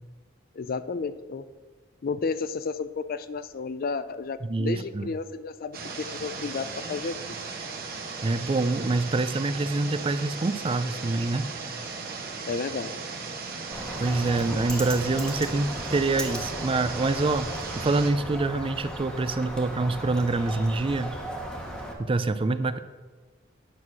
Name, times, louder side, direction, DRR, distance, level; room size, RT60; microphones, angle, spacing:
voice 1, 0.5-1.4 2.0-7.4 12.4-13.0, left 4 dB, 50° left, 13 dB, 0.4 m, -32 dB
voice 2, 4.4-5.1 8.2-11.5 14.0-21.1 22.0-22.8, right 3 dB, 25° right, 12 dB, 0.4 m, -26 dB
sound 1, 5.7-18.1, right 4 dB, 50° right, 1.3 m, -37 dB
Bird, 13.7-21.9, right 1 dB, 5° left, 1.3 m, -36 dB
9.6 x 6.2 x 6.1 m, 1.4 s
head